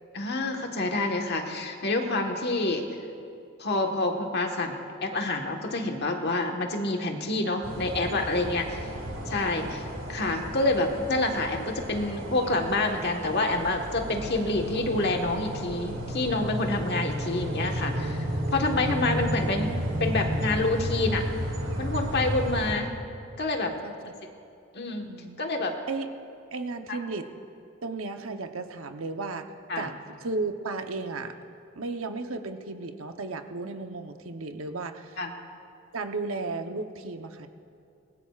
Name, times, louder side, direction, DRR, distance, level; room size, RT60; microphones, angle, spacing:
voice 1, 0.1-2.8 3.6-4.8 5.0-8.9 9.3-19.7 20.0-21.2 21.8-22.9 23.4-23.7 24.7-25.1 25.4-25.7 26.9-27.0 29.7-29.9 35.2-35.3, left 2 dB, 55° left, 2 dB, 1.4 m, -27 dB
sound 1, 7.6-22.7, equal, 70° right, 2.2 m, -34 dB
sound 2, 13.5-20.4, equal, 45° right, 1.2 m, -34 dB
voice 2, 23.8-24.1 25.0-25.4 25.9-26.1 26.5-27.3 27.8-29.5 29.8-30.0 30.2-31.3 31.7-35.2 35.9-37.5, right 3 dB, 90° right, 6 dB, 0.9 m, -34 dB
24.0 x 19.5 x 2.4 m, 2.5 s
head